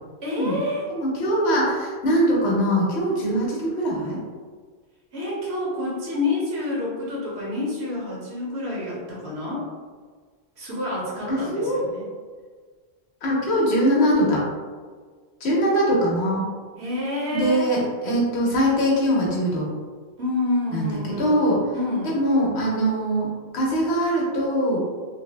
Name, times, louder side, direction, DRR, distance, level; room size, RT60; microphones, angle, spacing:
voice 1, 0.2-0.8 5.1-9.7 10.6-12.1 16.8-17.7 20.2-21.4 21.7-22.1, left 2 dB, 85° right, -5 dB, 1.3 m, -28 dB
voice 2, 0.9-4.2 11.3-11.8 13.2-14.4 15.4-16.5 17.3-19.7 20.7-21.7 22.0-24.8, equal, 85° left, -4 dB, 1.1 m, -22 dB
3.1 x 2.1 x 3.2 m, 1.5 s
omnidirectional pair, 1.1 m